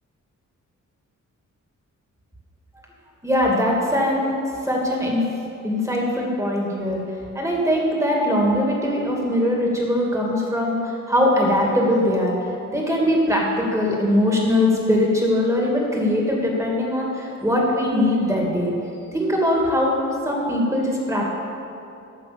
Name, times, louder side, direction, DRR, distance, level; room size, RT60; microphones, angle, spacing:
voice 1, 3.2-4.3 4.6-5.2 5.6-7.0 7.3-12.3 12.7-18.7 19.1-21.3, left 1 dB, 10° right, -2 dB, 2.6 m, -21 dB
15.0 x 5.7 x 7.1 m, 2.7 s
cardioid pair, 95°, 32 cm